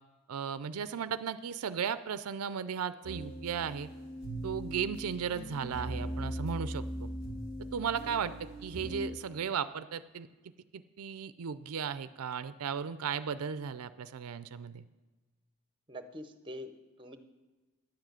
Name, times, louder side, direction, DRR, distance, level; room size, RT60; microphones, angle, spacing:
voice 1, 0.3-3.9 4.4-7.1 7.7-10.3 10.7-14.8, right 7 dB, 80° right, 13 dB, 0.5 m, -36 dB
sound 1, 3.0-9.1, equal, 50° left, 2.9 m, -40 dB
voice 2, 15.9-17.2, equal, 25° right, 9 dB, 0.8 m, -45 dB
10.5 x 7.3 x 7.8 m, 1.2 s
head